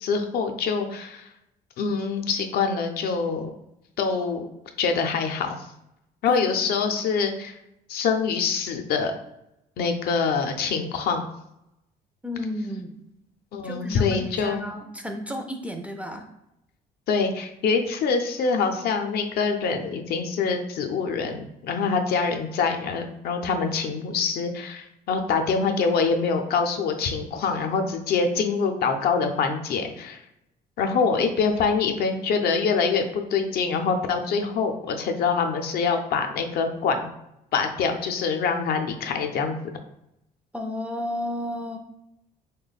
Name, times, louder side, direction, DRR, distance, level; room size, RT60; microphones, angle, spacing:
voice 1, 0.0-1.2 1.8-3.5 4.0-4.5 4.8-5.6 6.2-7.6 7.9-9.1 9.8-11.2 13.5-14.6 17.1-30.2 30.8-37.1 37.5-39.5, left 5 dB, 65° left, 5 dB, 0.5 m, -25 dB
voice 2, 12.2-13.0 13.6-16.2 40.5-41.8, left 1 dB, 10° right, 4 dB, 0.3 m, -32 dB
3.0 x 2.1 x 4.0 m, 0.83 s
cardioid pair, 110°, 17 cm